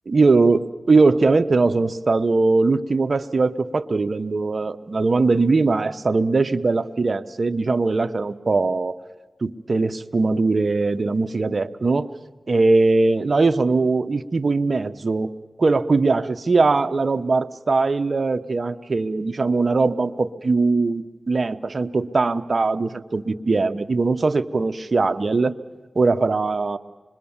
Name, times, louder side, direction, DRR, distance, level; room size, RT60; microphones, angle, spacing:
voice 1, 0.1-9.0 9.4-12.1 12.5-15.3 15.6-25.5 25.9-26.8, right 3 dB, 60° right, 12 dB, 1.0 m, -20 dB
26.0 x 22.0 x 7.3 m, 1.3 s
cardioid pair, 45°, 0 cm